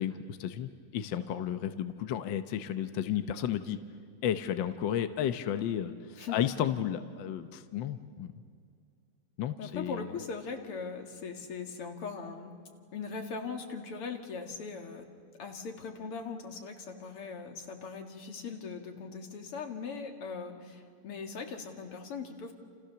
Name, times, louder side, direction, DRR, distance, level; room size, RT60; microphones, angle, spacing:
voice 1, 0.0-3.8 4.2-5.9 6.3-8.3 9.4-10.1, left 10 dB, 65° left, 9 dB, 1.5 m, -33 dB
voice 2, 6.2-6.5 9.6-12.5 12.9-15.1 15.4-22.5, left 5 dB, 85° left, 4 dB, 3.1 m, -40 dB
29.5 x 28.5 x 6.9 m, 2.2 s
omnidirectional pair, 2.4 m